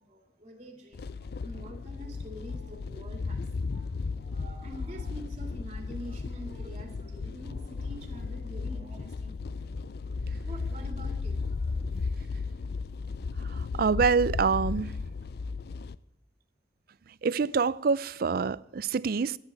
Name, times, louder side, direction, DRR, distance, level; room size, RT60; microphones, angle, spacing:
voice 1, 0.1-9.7 10.4-11.8, right 1 dB, 35° right, 2.1 m, -46 dB
sound 1, 0.9-16.0, left 4 dB, 55° left, 0.4 m, -35 dB
voice 2, 13.8-14.9 17.2-19.4, right 5 dB, 50° right, 0.4 m, -26 dB
12.5 x 10.0 x 8.2 m
head